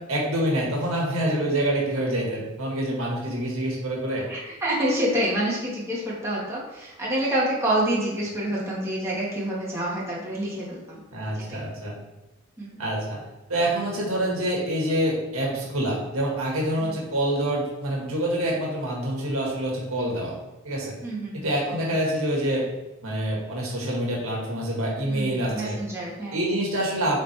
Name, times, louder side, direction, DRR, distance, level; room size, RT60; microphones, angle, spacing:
voice 1, 0.1-4.3 11.1-11.9 12.8-13.2 13.5-20.3 20.6-20.9 21.3-22.7 23.0-25.8 26.3-27.2, right 1 dB, 70° right, -3 dB, 1.9 m, -26 dB
voice 2, 4.3-11.0 11.3-11.6 12.6-12.8 16.8-17.0 21.0-21.9 25.0-26.6, right 1 dB, 15° right, -7 dB, 1.7 m, -28 dB
7.7 x 4.1 x 3.4 m, 1.0 s
head